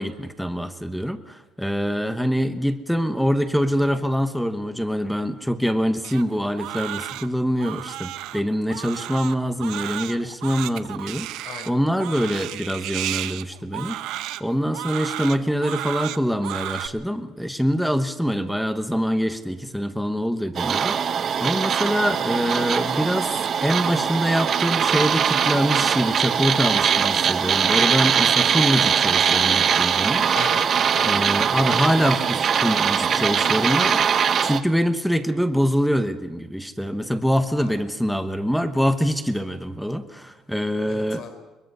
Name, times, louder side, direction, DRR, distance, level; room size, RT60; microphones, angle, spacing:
voice 1, 0.0-14.0 14.4-30.3 31.0-34.0 34.4-41.3, equal, ahead, 9 dB, 1.1 m, -24 dB
Crying sobbing, 6.0-16.9, right 14 dB, 80° right, 0.8 m, -33 dB
sound 1, 20.5-34.6, right 7 dB, 35° right, 0.9 m, -21 dB
voice 2, 30.2-31.3 33.1-33.9 37.6-37.8 40.9-41.3, left 7 dB, 60° left, 6 dB, 3.9 m, -38 dB
22.5 x 22.0 x 5.6 m, 1.1 s
cardioid pair, 150°, 0 cm